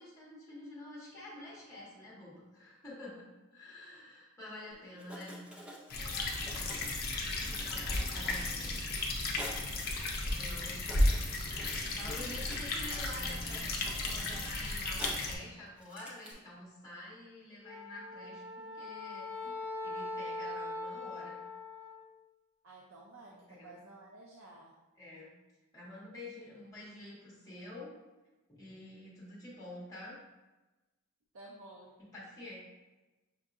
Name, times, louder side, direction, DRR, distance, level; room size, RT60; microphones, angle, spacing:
voice 1, 0.0-3.3 3.5-5.5 7.2-8.8 10.2-11.1 11.7-19.5 19.8-21.4 23.3-23.8 25.0-25.3 25.7-27.9 28.5-30.2 32.1-32.6, left 1 dB, 15° left, -7 dB, 1.2 m, -48 dB
Writing, 4.7-4.8 5.0-9.7 10.3-10.4 10.6-15.4 15.8-16.3, equal, 5° right, 0.4 m, -49 dB
voice 2, 4.7-5.2 5.9-6.4 11.8-11.9 22.6-24.8 31.3-32.0, right 2 dB, 65° right, -2 dB, 0.5 m, -53 dB
sound 1, 5.9-15.3, left 2 dB, 45° left, 0.5 m, -34 dB
Wind instrument woodwind instrument, 17.6-22.0, left 2 dB, 25° right, 1.3 m, -41 dB
5.8 x 2.7 x 2.5 m, 1.1 s
head